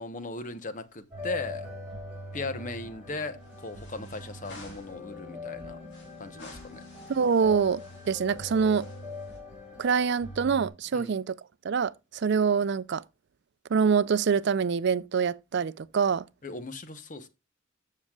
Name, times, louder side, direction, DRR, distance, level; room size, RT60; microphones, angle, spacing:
voice 1, 0.0-1.7 2.3-5.8 6.2-6.8 10.9-11.1 16.4-17.3, left 3 dB, 40° left, 0.9 m, -37 dB
sound 1, 0.8-1.6 1.8-1.9 3.4-5.0 5.9-9.4, left 2 dB, 55° left, 2.7 m, -53 dB
sound 2, 1.1-10.7, left 2 dB, 5° right, 4.6 m, -42 dB
voice 2, 7.1-8.9 9.8-11.4 11.6-13.0 13.7-16.2, right 6 dB, 55° right, 0.4 m, -25 dB
14.5 x 6.5 x 2.3 m
head